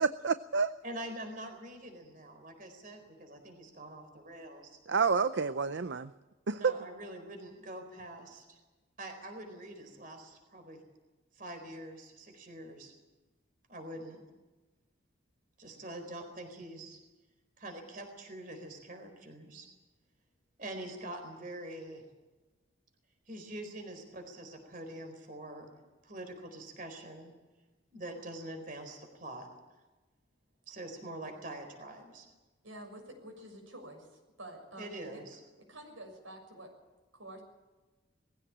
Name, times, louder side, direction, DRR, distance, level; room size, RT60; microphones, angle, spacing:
voice 1, 0.0-0.7 4.9-6.1 6.5-6.8, right 5 dB, 60° right, 13 dB, 0.6 m, -29 dB
voice 2, 0.8-4.8 6.5-8.6 9.0-10.8 11.4-12.9 13.7-14.2 15.6-17.0 17.6-19.7 20.6-22.0 23.3-25.7 26.0-27.3 27.9-29.5 30.7-32.3 34.8-35.4, right 1 dB, 40° right, 5 dB, 4.3 m, -45 dB
voice 3, 32.6-35.2 35.6-36.7 37.1-37.4, right 1 dB, 85° right, 3 dB, 6.7 m, -49 dB
20.5 x 16.0 x 8.7 m, 1.2 s
head